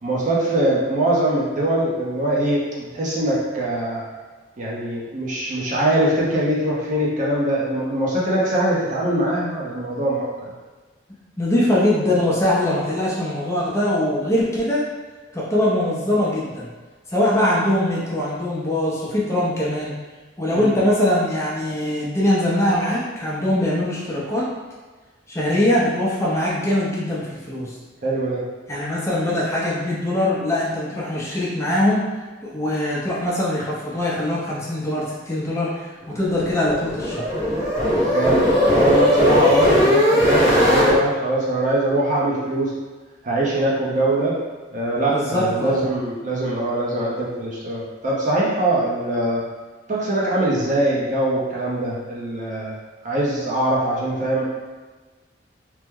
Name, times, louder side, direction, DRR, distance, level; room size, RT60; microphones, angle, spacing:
voice 1, 0.0-4.0 4.6-10.5 20.5-20.7 28.0-28.4 38.1-42.7 43.2-44.3 44.7-49.4 49.9-52.8 53.0-54.4, right 1 dB, 45° right, -5 dB, 0.7 m, -22 dB
voice 2, 11.4-14.8 15.3-16.7 17.1-19.9 20.4-24.4 25.3-27.7 28.7-32.0 32.4-37.2 45.1-45.8, left 1 dB, 15° left, -6 dB, 0.6 m, -22 dB
sound 1, 36.2-40.9, left 1 dB, 20° right, 1.0 m, -18 dB
3.0 x 2.1 x 3.5 m, 1.3 s
head